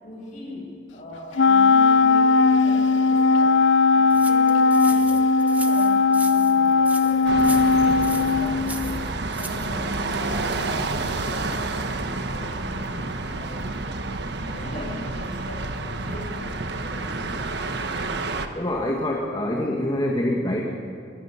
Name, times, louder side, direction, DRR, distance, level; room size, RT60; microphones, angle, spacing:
voice 1, 0.0-3.6 3.9-14.0 14.4-17.7, left 1 dB, 40° left, -3 dB, 7.8 m, -40 dB
Wind instrument woodwind instrument, 1.4-9.0, left 4 dB, 80° left, 0.6 m, -18 dB
sound 1, 4.1-9.7, right 2 dB, 10° right, 1.2 m, -39 dB
sound 2, 7.3-18.5, right 2 dB, 65° right, 1.4 m, -29 dB
voice 2, 18.5-20.6, left 1 dB, 25° left, -1 dB, 1.9 m, -25 dB
26.5 x 21.0 x 5.8 m, 2.6 s
head